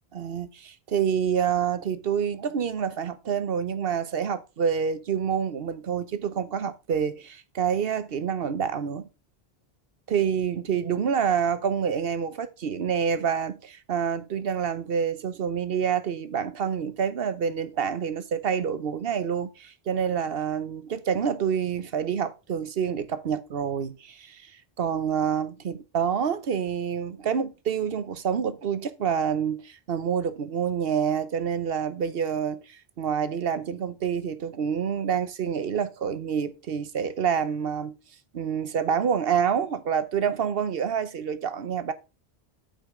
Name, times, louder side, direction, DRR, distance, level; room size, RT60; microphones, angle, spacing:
voice 1, 0.1-9.1 10.1-24.5 24.8-37.9 38.3-41.9, right 7 dB, 65° right, 1.0 m, -27 dB
8.5 x 5.6 x 4.8 m
omnidirectional pair, 1.1 m